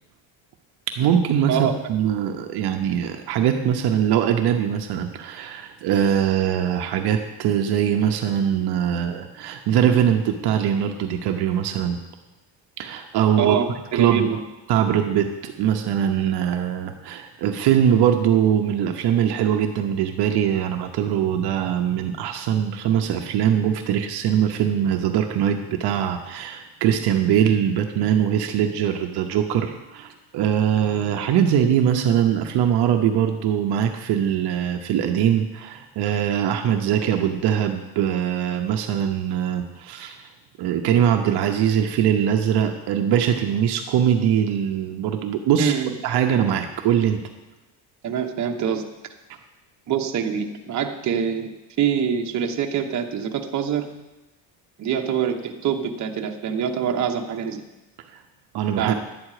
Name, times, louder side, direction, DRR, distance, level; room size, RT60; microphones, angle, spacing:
voice 1, 1.0-12.0 12.8-13.6 13.9-14.3 14.7-40.3 40.6-45.7 46.0-47.2 58.1-58.2 58.5-58.9, right 9 dB, 65° right, 4 dB, 0.9 m, -22 dB
voice 2, 13.4-14.4 45.6-45.9 48.0-48.8 49.9-51.5 51.8-53.9 54.8-57.6 58.8-58.9, right 8 dB, 45° right, 3 dB, 1.1 m, -25 dB
11.5 x 8.8 x 4.9 m, 1.0 s
cardioid pair, 145°, 42 cm